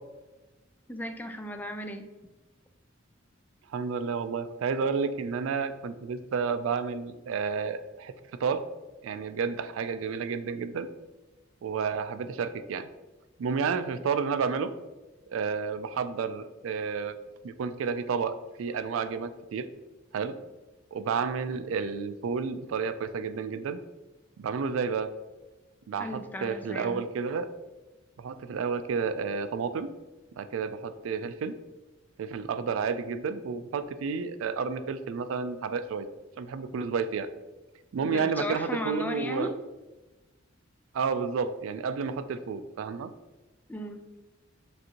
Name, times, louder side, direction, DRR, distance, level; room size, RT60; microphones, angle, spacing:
voice 1, 0.9-2.1 26.0-27.0 38.0-39.6 43.7-44.0, left 1 dB, 10° left, 7 dB, 0.3 m, -36 dB
voice 2, 3.7-8.1 8.4-8.6 9.0-10.9 11.6-12.9 13.4-14.7 15.3-17.2 17.4-19.7 20.1-20.4 20.9-23.8 24.4-25.1 25.9-27.5 28.2-29.9 30.4-31.6 32.2-36.1 36.4-37.3 37.9-39.5 40.9-43.1, right 5 dB, 80° right, 11 dB, 0.3 m, -31 dB
6.2 x 2.6 x 2.8 m, 1.1 s
head